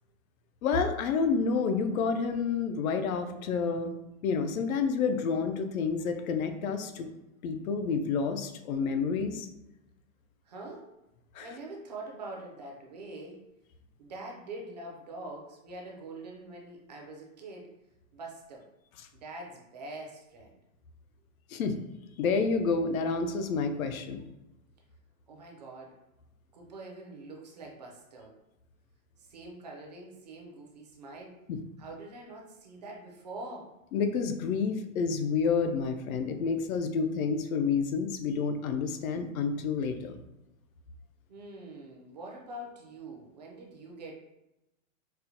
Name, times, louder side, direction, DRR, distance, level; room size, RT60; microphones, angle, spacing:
voice 1, 0.6-3.9 4.2-7.1 7.4-9.5 11.3-11.5 21.5-21.7 22.2-24.2 31.5-31.6 33.9-40.1, left 5 dB, 85° left, 7 dB, 0.6 m, -29 dB
voice 2, 10.4-10.9 11.4-13.4 14.0-17.7 18.1-18.7 19.1-20.5 25.3-25.9 26.5-28.3 29.2-31.4 31.8-33.7 41.3-44.1, right 2 dB, 35° right, -1 dB, 0.4 m, -44 dB
4.3 x 2.1 x 2.6 m, 0.93 s
supercardioid pair, 170°, 41 cm